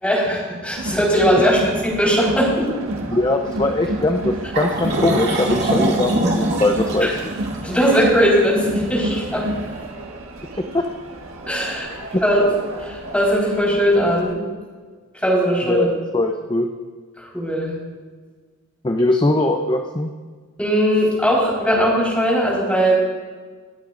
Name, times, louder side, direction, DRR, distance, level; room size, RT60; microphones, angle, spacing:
voice 1, 0.0-2.7 7.0-7.1 7.6-9.4 11.5-11.9 12.2-12.4 12.8-14.4 15.2-15.9 17.2-17.7 20.6-22.9, equal, 5° left, -5 dB, 4.4 m, -19 dB
Crowd, 0.7-14.3, right 1 dB, 70° right, 1.6 m, -30 dB
voice 2, 3.1-7.3 10.7-10.8 12.1-12.2 15.6-16.7 18.8-20.1, left 2 dB, 20° left, 4 dB, 0.7 m, -21 dB
sound 1, 4.5-9.7, right 1 dB, 50° right, 2.5 m, -24 dB
26.0 x 9.2 x 2.6 m, 1.5 s
head